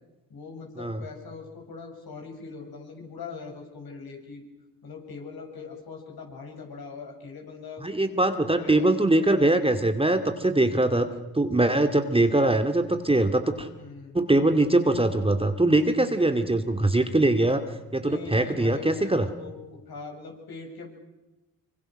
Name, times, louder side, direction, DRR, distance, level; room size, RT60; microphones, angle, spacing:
voice 1, 0.3-4.4 4.8-7.8 8.3-9.0 13.7-14.2 17.9-21.0, left 4 dB, 55° left, 2 dB, 7.5 m, -41 dB
voice 2, 7.8-11.1 11.3-13.7 14.1-17.6 17.9-19.3, right 2 dB, 10° right, 7 dB, 2.2 m, -22 dB
26.5 x 25.0 x 6.5 m, 1.0 s
hypercardioid pair, 50°, 44 cm